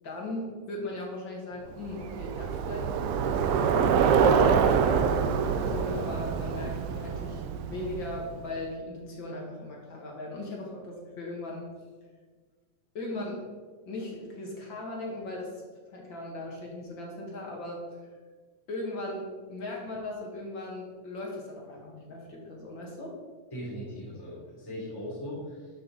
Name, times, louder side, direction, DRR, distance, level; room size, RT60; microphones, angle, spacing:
voice 1, 0.0-4.0 4.5-5.1 5.5-7.4 7.7-11.7 12.9-13.4 13.9-15.5 15.9-18.1 18.7-23.1, left 2 dB, 45° left, -1 dB, 2.2 m, -38 dB
Bicycle, 1.8-8.3, right 6 dB, 80° right, 1.6 m, -25 dB
voice 2, 23.5-25.7, equal, 5° left, -6 dB, 2.7 m, -39 dB
11.5 x 6.6 x 4.1 m, 1.5 s
omnidirectional pair, 3.5 m